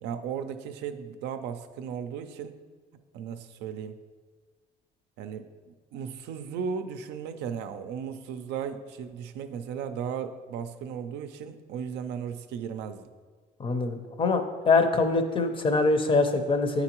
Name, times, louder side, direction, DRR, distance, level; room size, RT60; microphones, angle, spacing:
voice 1, 0.0-2.5 3.1-4.0 5.2-13.1, right 7 dB, 85° right, 8 dB, 0.5 m, -36 dB
voice 2, 13.6-16.8, left 3 dB, 30° left, 8 dB, 0.6 m, -24 dB
8.7 x 3.9 x 3.0 m, 1.5 s
cardioid pair, 110°, 17 cm